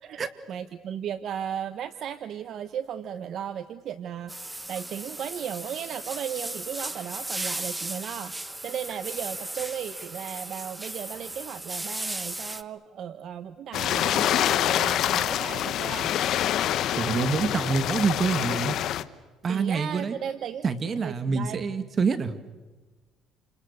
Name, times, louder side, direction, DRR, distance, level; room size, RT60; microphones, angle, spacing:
voice 1, 0.5-8.3 8.6-16.1 19.5-20.6 21.0-21.6, right 9 dB, 55° right, 12 dB, 1.1 m, -35 dB
sound 1, 4.3-12.6, right 2 dB, 10° right, 1.2 m, -36 dB
sound 2, 13.7-19.0, left 11 dB, 65° left, 1.1 m, -26 dB
voice 2, 17.0-18.8 19.4-20.2 20.6-22.4, right 5 dB, 35° right, 11 dB, 2.2 m, -26 dB
29.0 x 28.0 x 6.8 m, 1.2 s
cardioid pair, 110°, 0 cm